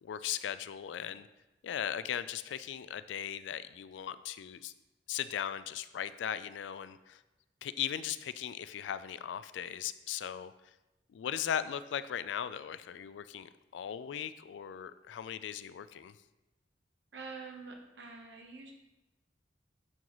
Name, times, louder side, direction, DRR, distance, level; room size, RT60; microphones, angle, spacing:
voice 1, 0.0-1.3 1.6-4.7 5.1-7.2 7.6-10.5 11.1-16.1, left 9 dB, 90° left, 14 dB, 0.3 m, -38 dB
voice 2, 17.1-18.7, right 4 dB, 75° right, 2 dB, 1.0 m, -46 dB
10.5 x 3.9 x 3.0 m, 1.0 s
head